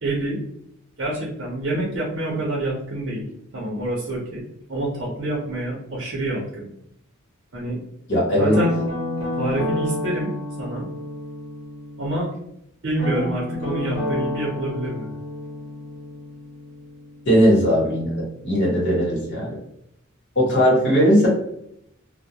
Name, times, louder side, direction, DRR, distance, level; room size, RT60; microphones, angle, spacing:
voice 1, 0.0-0.4 1.0-3.3 3.5-4.4 4.7-6.7 7.5-7.8 8.4-8.7 9.4-10.3 10.6-10.9 12.0-12.3 12.8-15.1, right 1 dB, 60° right, -4 dB, 0.6 m, -27 dB
voice 2, 8.1-8.6 17.3-19.6 20.4-21.3, equal, 60° left, -5 dB, 1.1 m, -18 dB
Guitar, 8.5-12.3 13.0-17.7, left 1 dB, 80° left, 0.9 m, -30 dB
2.2 x 2.1 x 2.8 m, 0.75 s
head